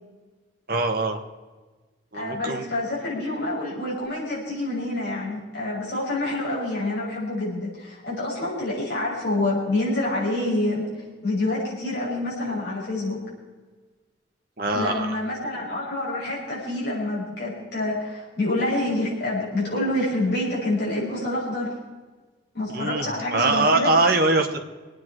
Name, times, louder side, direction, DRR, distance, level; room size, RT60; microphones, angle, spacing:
voice 1, 0.7-1.2 2.1-2.7 14.6-15.2 22.7-24.6, right 2 dB, 50° right, 3 dB, 1.6 m, -22 dB
voice 2, 2.1-10.8 11.2-13.2 14.7-21.8 22.5-23.9, left 2 dB, 55° left, -6 dB, 6.6 m, -27 dB
24.5 x 9.5 x 4.8 m, 1.3 s
head